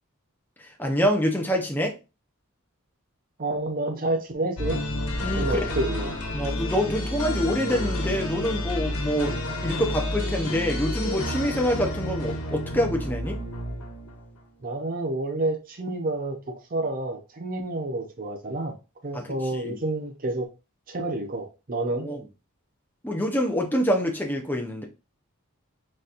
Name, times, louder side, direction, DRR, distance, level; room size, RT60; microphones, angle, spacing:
voice 1, 0.8-1.9 5.2-5.7 6.3-13.4 19.1-19.8 21.9-22.2 23.0-24.8, equal, 10° left, 0.7 m, -26 dB
voice 2, 3.4-4.8 5.3-6.1 14.6-16.4 16.7-18.8 19.0-20.5 20.9-22.1, right 2 dB, 40° right, 0.7 m, -29 dB
sound 1, 4.6-14.4, left 1 dB, 80° left, 1.2 m, -30 dB
4.2 x 4.0 x 2.5 m
head